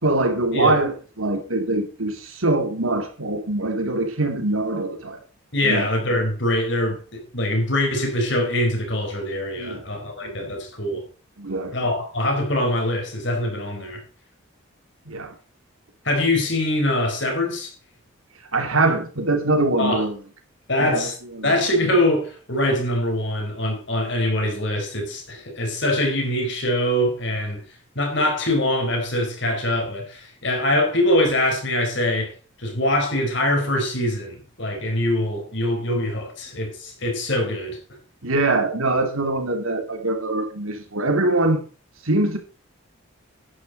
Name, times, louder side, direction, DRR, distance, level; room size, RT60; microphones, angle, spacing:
voice 1, 0.0-5.2 5.6-5.9 9.6-9.8 10.2-10.5 11.4-11.7 15.0-15.3 18.5-20.2 20.8-21.1 21.3-21.6 38.2-41.6 42.0-42.4, right 2 dB, 80° right, 3.0 m, -23 dB
voice 2, 5.5-11.1 11.7-14.0 16.0-17.7 19.8-20.0 20.7-21.1 21.4-27.6 27.9-32.3 32.6-37.8, left 1 dB, 55° left, 4.5 m, -23 dB
11.0 x 10.0 x 4.2 m
head